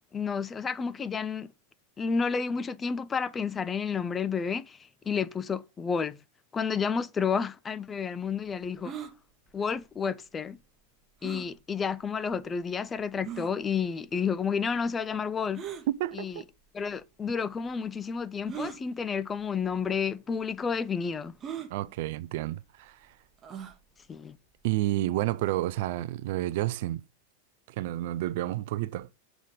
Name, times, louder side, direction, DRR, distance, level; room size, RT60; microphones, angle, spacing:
voice 1, 0.1-1.5 2.0-4.8 5.1-6.2 6.5-8.9 9.5-10.6 11.2-15.6 16.1-16.4 16.7-21.3 24.1-24.4, left 6 dB, 20° left, 0.4 m, -30 dB
sound 1, 8.8-9.1 11.2-11.5 12.3-12.4 13.2-13.5 15.5-15.9 16.9-17.0 18.5-18.8 19.7-19.9 20.1-20.2 21.4-21.7 23.4-23.8, right 9 dB, 25° right, 1.0 m, -38 dB
voice 2, 15.9-16.4 21.7-23.1 24.6-27.0 27.7-29.1, right 15 dB, 50° right, 0.4 m, -30 dB
7.0 x 3.7 x 5.1 m
figure-of-eight pair, 90°, 0 cm